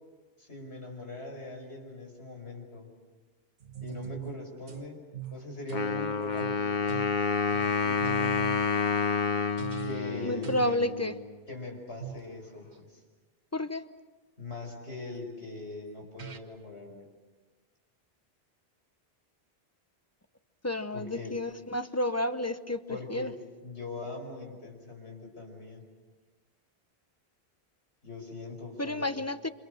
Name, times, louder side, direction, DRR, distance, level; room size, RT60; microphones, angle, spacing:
voice 1, 0.4-2.9 3.8-5.0 5.3-7.0 9.8-10.7 11.5-13.0 14.4-17.0 20.9-21.4 22.9-23.3 23.6-25.8 28.0-29.1, left 3 dB, 90° left, 2 dB, 5.7 m, -42 dB
sound 1, 3.6-4.9 5.1-6.0 6.4-6.6 6.9-7.2 7.5-7.7 8.0-8.7 9.6-10.2 10.4-10.8 12.0-12.3 15.7-15.8 16.2-16.4, right 11 dB, 80° right, 1.6 m, -41 dB
Wind instrument woodwind instrument, 5.7-11.4, left 5 dB, 45° left, 1.3 m, -29 dB
voice 2, 10.2-11.1 13.5-13.8 20.6-22.8 23.1-23.3 28.8-29.5, left 1 dB, 15° left, 10 dB, 0.8 m, -30 dB
29.0 x 27.0 x 6.6 m, 1.3 s
omnidirectional pair, 1.1 m